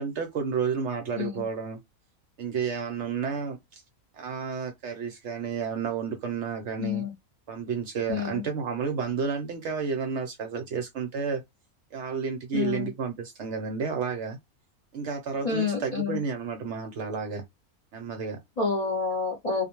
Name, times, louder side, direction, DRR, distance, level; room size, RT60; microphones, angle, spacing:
voice 1, 0.0-1.8 2.4-3.8 4.1-7.0 7.5-11.4 11.9-14.4 14.9-17.4 17.9-18.4, right 6 dB, 65° right, 0.8 m, -31 dB
voice 2, 6.8-7.1 8.1-8.4 12.5-12.9 15.4-16.2 18.6-19.7, left 5 dB, 45° left, 0.5 m, -28 dB
2.4 x 2.1 x 2.9 m
omnidirectional pair, 1.5 m